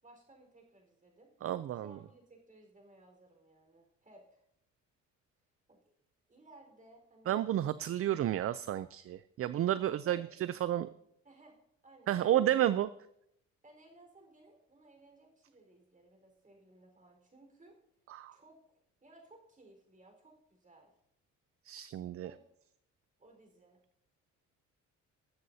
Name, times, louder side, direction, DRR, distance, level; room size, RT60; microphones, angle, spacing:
voice 1, 0.0-1.3 1.7-4.4 5.7-5.9 6.3-7.4 9.8-10.3 11.2-11.6 11.8-12.7 13.6-17.7 18.3-20.9 22.2-22.4 23.2-23.8, right 2 dB, 25° right, 2 dB, 4.4 m, -60 dB
voice 2, 1.4-2.0 7.3-10.9 12.1-12.9 18.1-18.4 21.6-22.3, right 12 dB, 50° right, 15 dB, 0.4 m, -31 dB
21.0 x 7.8 x 2.8 m, 0.77 s
cardioid pair, 90°, 30 cm